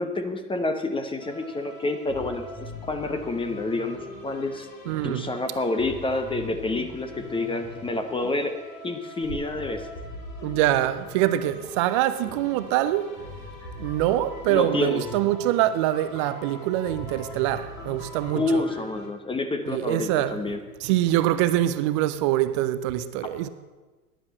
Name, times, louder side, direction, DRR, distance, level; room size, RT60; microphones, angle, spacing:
voice 1, 0.0-4.7 5.0-8.6 8.8-9.8 14.5-15.0 18.3-20.6, left 2 dB, 10° left, 1.0 m, -28 dB
sound 1, 1.2-19.1, left 2 dB, 40° left, 3.8 m, -41 dB
voice 2, 4.9-5.3 10.4-13.1 13.8-18.6 19.7-20.4 20.8-23.5, right 13 dB, 25° right, 0.3 m, -24 dB
12.5 x 10.0 x 7.6 m
figure-of-eight pair, 95°, 46 cm